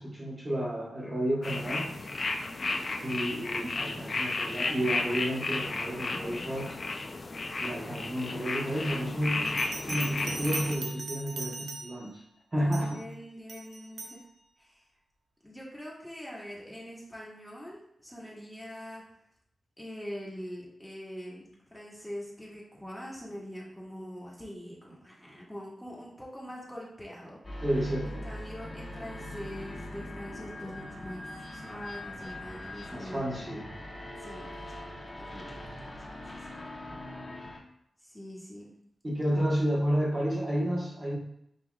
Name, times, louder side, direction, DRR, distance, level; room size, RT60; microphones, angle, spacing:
voice 1, 0.0-1.9 3.0-6.8 7.6-9.6 9.8-12.2 12.5-13.0 27.6-28.3 32.9-33.6 39.0-41.2, equal, 30° right, -4 dB, 1.2 m, -31 dB
sound 1, 1.4-10.7, left 3 dB, 45° left, 0.4 m, -33 dB
voice 2, 2.4-2.8 7.3-7.6 12.6-14.2 14.6-14.8 15.4-19.0 19.8-21.4 21.7-27.4 28.0-33.2 34.2-34.7 35.2-36.0 38.0-38.7, equal, 5° left, -5 dB, 1.5 m, -43 dB
Bell, 9.5-12.2 12.7-13.0 13.5-14.2, right 3 dB, 85° right, 0.6 m, -40 dB
sound 2, 27.4-37.6, left 1 dB, 25° left, 1.4 m, -42 dB
7.7 x 2.9 x 2.3 m, 0.75 s
cardioid pair, 75°, 0 cm